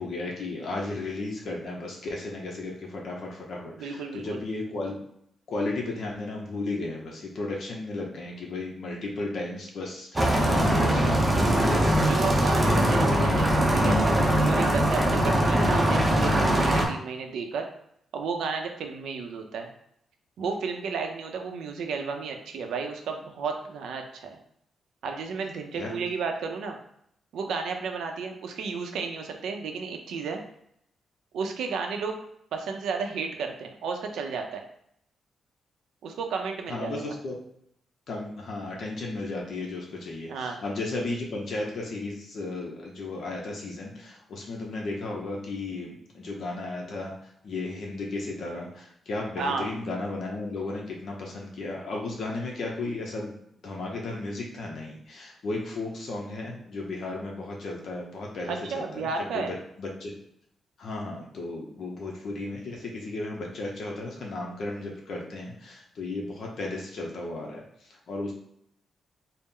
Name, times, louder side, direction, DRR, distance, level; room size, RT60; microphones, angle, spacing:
voice 1, 0.0-5.0 5.5-11.2 25.7-26.0 36.7-37.4 38.1-53.4 53.6-59.1 59.3-60.1 60.8-68.3, left 2 dB, 60° left, -1 dB, 0.7 m, -34 dB
voice 2, 3.8-4.4 12.0-17.7 18.1-19.7 20.4-24.4 25.0-26.8 27.3-30.4 31.3-32.2 32.5-34.6 36.0-37.1 40.3-40.6 49.4-49.7 58.5-59.5, right 5 dB, 90° right, 4 dB, 0.6 m, -33 dB
sound 1, 10.2-16.9, right 1 dB, 15° right, 0.6 m, -22 dB
4.2 x 2.0 x 3.7 m, 0.72 s
cardioid pair, 140°, 0 cm